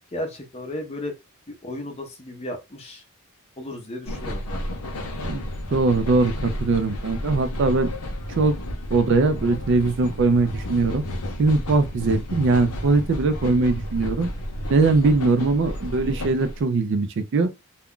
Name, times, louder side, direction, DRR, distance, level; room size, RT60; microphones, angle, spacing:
voice 1, 0.1-1.2 1.5-3.0 3.6-5.0, left 1 dB, 30° left, 0.6 m, -34 dB
sound 1, 4.1-16.6, left 1 dB, 85° left, 0.6 m, -32 dB
voice 2, 5.7-7.9 8.4-8.5 8.9-11.0 11.4-14.3 14.7-17.5, right 3 dB, 55° right, 0.4 m, -21 dB
2.3 x 2.1 x 3.6 m
head